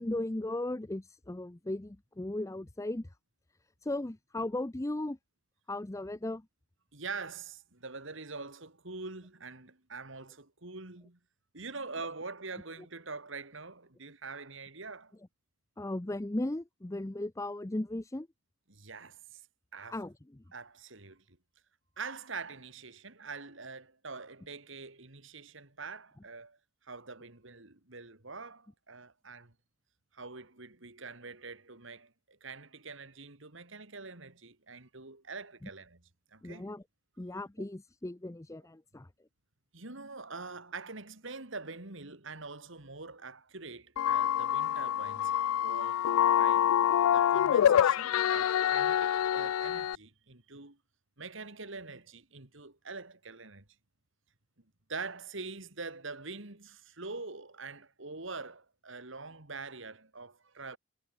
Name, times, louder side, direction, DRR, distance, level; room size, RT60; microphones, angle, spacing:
voice 1, 0.0-3.1 3.8-5.2 5.7-6.4 15.8-18.3 19.9-20.4 36.4-36.8 37.2-39.1, left 1 dB, 15° left, 0.6 m, -36 dB
voice 2, 6.9-11.2 11.5-15.1 18.7-19.4 19.7-20.0 20.5-21.4 22.0-26.6 26.8-29.5 30.1-36.0 36.3-36.7 39.7-46.0 46.3-46.8 47.1-50.8 51.2-53.6 54.9-60.8, right 4 dB, 65° right, 2.9 m, -44 dB
sound 1, 44.0-50.0, left 10 dB, 85° left, 0.3 m, -26 dB
head